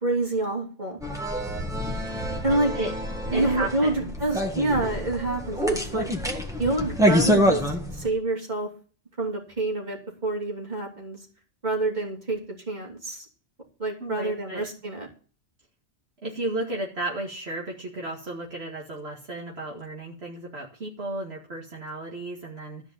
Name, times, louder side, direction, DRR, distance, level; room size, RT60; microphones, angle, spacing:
voice 1, 0.0-1.0 2.4-2.7 3.3-6.1 6.6-8.7 9.2-11.2 11.6-12.4 12.7-13.3 13.8-15.1, right 2 dB, 40° right, 0 dB, 3.0 m, -27 dB
sound 1, 1.0-8.1, equal, 5° right, 1.6 m, -26 dB
voice 2, 3.3-4.1 14.0-14.7 16.2-22.8, right 2 dB, 65° right, -3 dB, 2.3 m, -33 dB
13.5 x 5.2 x 8.7 m, 0.40 s
omnidirectional pair, 1.2 m